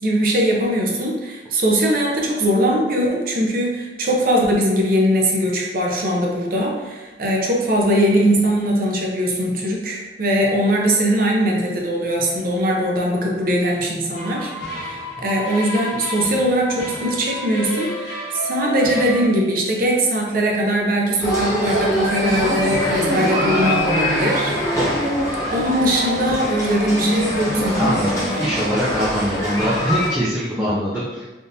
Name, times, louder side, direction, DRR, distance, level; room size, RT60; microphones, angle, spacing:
voice 1, 0.0-24.6 25.5-28.0, equal, 50° right, -1 dB, 0.6 m, -20 dB
sound 1, 14.1-19.3, left 1 dB, 90° left, 1.0 m, -30 dB
sound 2, 21.2-30.1, equal, 20° left, 0.9 m, -23 dB
voice 2, 27.8-31.3, equal, 10° right, -9 dB, 0.5 m, -23 dB
3.5 x 2.5 x 2.8 m, 1.2 s
head